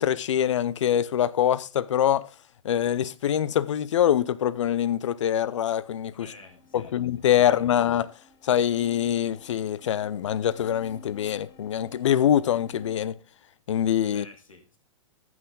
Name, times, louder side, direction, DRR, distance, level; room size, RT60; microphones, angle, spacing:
voice 1, 0.0-2.3 2.6-6.3 6.7-8.1 8.4-13.1 13.7-14.2, left 10 dB, 65° left, 0.7 m, -24 dB
sound 1, 6.0-13.0, left 2 dB, 25° left, 3.9 m, -54 dB
voice 2, 6.1-7.0 14.0-14.8, left 3 dB, 80° left, 2.7 m, -50 dB
14.0 x 6.1 x 3.8 m
hypercardioid pair, 115°, 17 cm